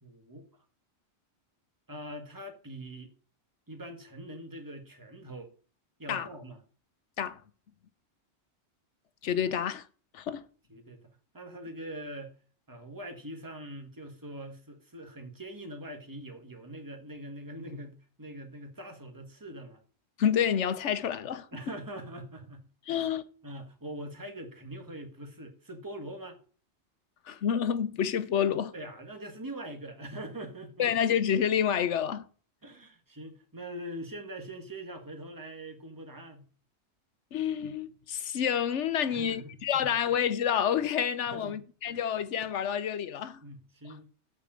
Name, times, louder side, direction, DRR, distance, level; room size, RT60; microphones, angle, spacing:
voice 1, 0.0-0.4 1.9-3.1 3.7-5.5 6.0-6.6 10.7-12.3 12.7-19.8 21.5-23.1 23.4-26.4 28.7-30.9 32.6-36.5 39.1-39.9 41.3-41.6 41.8-42.0 43.4-44.1, right 1 dB, 15° right, 1.5 m, -43 dB
voice 2, 9.2-9.9 10.1-10.4 20.2-21.5 22.9-23.2 27.3-28.7 30.8-32.2 37.3-43.4 43.9-44.0, left 8 dB, 90° left, 1.1 m, -28 dB
8.3 x 4.8 x 7.3 m
omnidirectional pair, 1.2 m